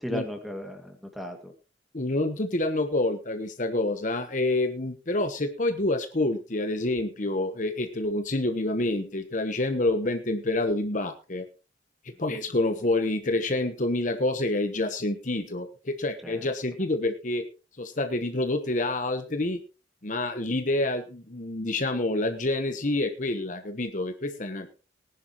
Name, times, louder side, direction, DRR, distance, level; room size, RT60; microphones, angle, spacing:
voice 1, 0.0-1.5 12.1-12.4 16.2-16.5, equal, ahead, 4 dB, 2.2 m, -36 dB
voice 2, 1.9-11.4 12.2-17.4 17.8-19.6 20.0-24.7, left 2 dB, 45° left, 7 dB, 1.1 m, -27 dB
19.0 x 10.5 x 3.1 m, 0.32 s
head